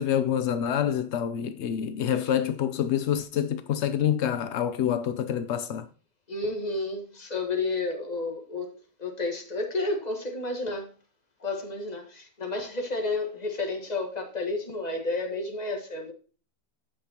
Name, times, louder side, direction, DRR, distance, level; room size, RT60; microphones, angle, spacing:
voice 1, 0.0-5.9, left 9 dB, 85° left, 0.6 m, -27 dB
voice 2, 6.3-10.9 11.4-16.1, left 2 dB, 25° left, 1.5 m, -31 dB
15.5 x 5.3 x 2.9 m
omnidirectional pair, 1.9 m